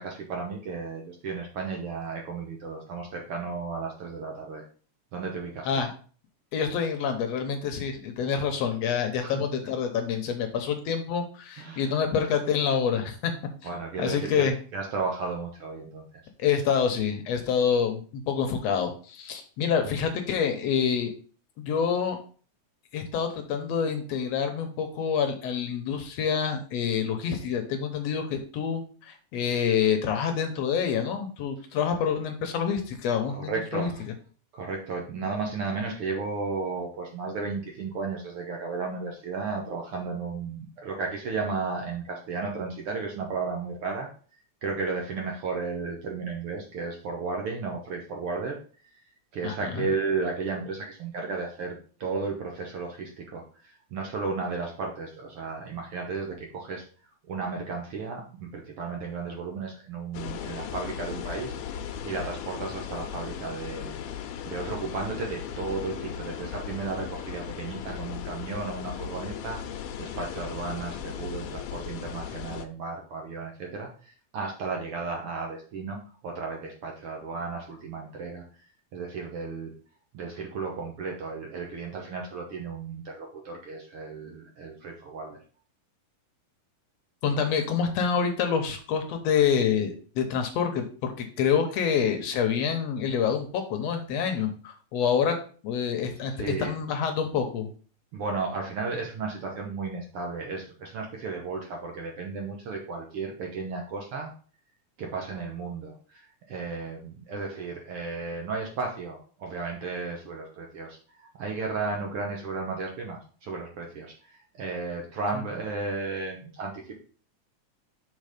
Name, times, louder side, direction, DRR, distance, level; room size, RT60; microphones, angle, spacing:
voice 1, 0.0-4.6 5.1-5.8 9.2-9.4 11.6-11.9 13.6-16.2 19.8-19.9 33.3-34.0 34.5-44.1 44.6-48.6 49.3-56.8 57.3-76.0 76.2-78.4 78.9-79.7 80.1-85.4 96.2-96.7 98.1-104.3 105.0-117.0, right 4 dB, 65° right, 1 dB, 1.5 m, -34 dB
voice 2, 6.5-13.3 14.0-14.5 16.4-21.1 21.6-22.2 22.9-33.9 49.4-49.9 87.2-95.4 95.6-97.7 115.3-115.4, left 7 dB, 70° left, 5 dB, 1.8 m, -27 dB
sound 1, 60.1-72.7, left 8 dB, 90° left, 2.2 m, -37 dB
6.5 x 4.0 x 5.0 m, 0.41 s
omnidirectional pair, 3.5 m